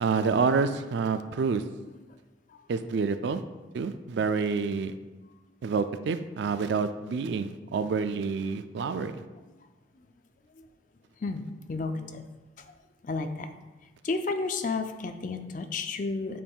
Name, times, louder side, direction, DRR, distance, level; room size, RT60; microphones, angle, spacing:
voice 1, 0.0-1.6 2.7-3.4 3.7-4.9 5.6-9.2, right 5 dB, 70° right, 10 dB, 0.3 m, -28 dB
voice 2, 8.8-9.2 11.2-12.3 12.6-12.7 13.0-13.5 14.0-16.4, left 3 dB, 45° left, 7 dB, 0.4 m, -32 dB
8.4 x 5.3 x 2.3 m, 1.2 s
head